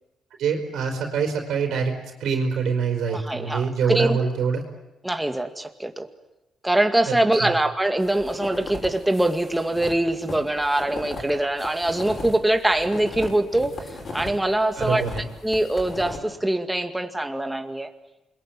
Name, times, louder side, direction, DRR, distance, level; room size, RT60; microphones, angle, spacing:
voice 1, 0.4-1.9 2.2-4.6 7.4-7.5 14.8-15.2, right 6 dB, 75° right, 2 dB, 4.5 m, -24 dB
voice 2, 3.1-4.2 5.0-6.1 6.6-15.0 15.4-17.9, right 1 dB, 10° right, 7 dB, 2.2 m, -23 dB
sound 1, 8.0-14.4 14.7-16.2, left 2 dB, 45° left, 7.4 m, -37 dB
28.0 x 22.5 x 9.3 m, 0.95 s
cardioid pair, 90°, 0 cm